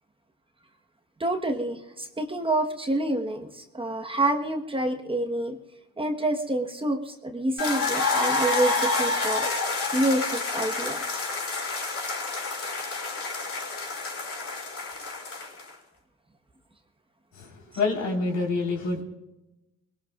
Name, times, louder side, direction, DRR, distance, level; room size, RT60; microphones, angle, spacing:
voice 1, 1.2-5.6 6.0-9.5 9.9-11.2, right 1 dB, 20° right, 3 dB, 1.4 m, -27 dB
sound 1, 7.6-15.7, left 3 dB, 50° left, 5.4 m, -28 dB
voice 2, 17.3-19.0, left 3 dB, 75° left, -1 dB, 4.5 m, -27 dB
24.5 x 21.0 x 2.5 m, 0.97 s
cardioid pair, 90°, 30 cm